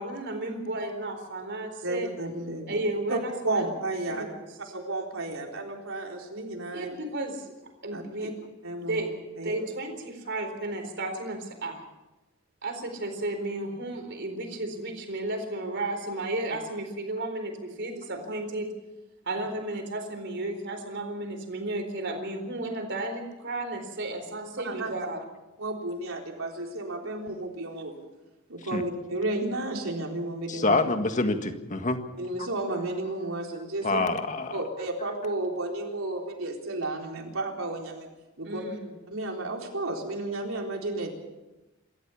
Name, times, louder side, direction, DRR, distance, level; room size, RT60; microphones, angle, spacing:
voice 1, 0.0-2.1 2.7-3.7 4.1-4.3 4.6-4.7 6.7-7.5 7.8-8.3 8.9-9.1 9.4-11.8 12.6-18.7 19.2-25.2 38.4-38.9, right 2 dB, 55° right, 5 dB, 4.1 m, -33 dB
voice 2, 1.8-2.8 3.1-3.2 3.4-4.2 4.7-6.9 7.9-8.3 8.6-9.0 9.4-9.6 24.6-24.9 25.6-28.0 28.5-30.8 32.2-34.0 34.5-38.1 38.4-38.6 39.1-41.1, right 2 dB, 75° right, 1 dB, 4.2 m, -32 dB
voice 3, 30.5-32.0 33.8-34.6, left 3 dB, 35° left, 7 dB, 1.8 m, -26 dB
26.5 x 14.0 x 7.1 m, 1.1 s
head